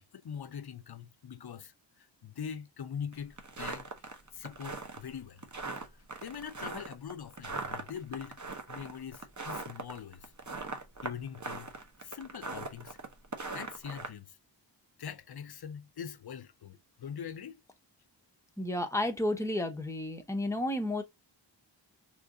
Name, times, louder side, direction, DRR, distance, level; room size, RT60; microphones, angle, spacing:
voice 1, 0.0-3.9 4.3-5.5 5.8-8.4 8.7-10.3 11.0-11.7 12.0-13.0 13.5-14.4 15.0-17.6, left 7 dB, 60° left, 0.5 m, -43 dB
sound 1, 3.1-14.1, right 3 dB, 40° right, 0.7 m, -40 dB
voice 2, 18.6-21.0, left 1 dB, 5° left, 0.7 m, -32 dB
3.0 x 2.4 x 3.6 m
wide cardioid pair, 40°, 45 cm